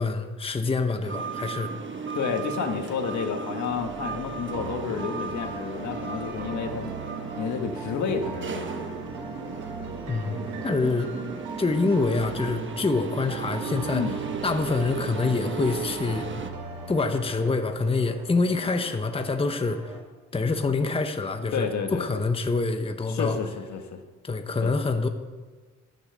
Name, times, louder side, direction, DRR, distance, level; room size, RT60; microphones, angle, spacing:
voice 1, 0.0-1.7 10.1-11.1 11.6-14.0 14.4-16.3 16.9-20.0 20.3-23.4 24.2-25.1, left 3 dB, 20° left, 6 dB, 1.0 m, -26 dB
sound 1, 1.0-16.5, right 5 dB, 40° right, 1.2 m, -36 dB
sound 2, 1.9-20.0, right 1 dB, 20° right, 4.9 m, -46 dB
voice 2, 2.1-6.9 7.4-8.9 13.9-14.2 21.5-22.2 23.1-24.0 24.6-24.7, left 6 dB, 70° left, 5 dB, 1.6 m, -30 dB
sound 3, 3.7-17.5, right 4 dB, 90° right, 1.5 m, -40 dB
11.5 x 9.2 x 6.9 m, 1.4 s
cardioid pair, 90°, 30 cm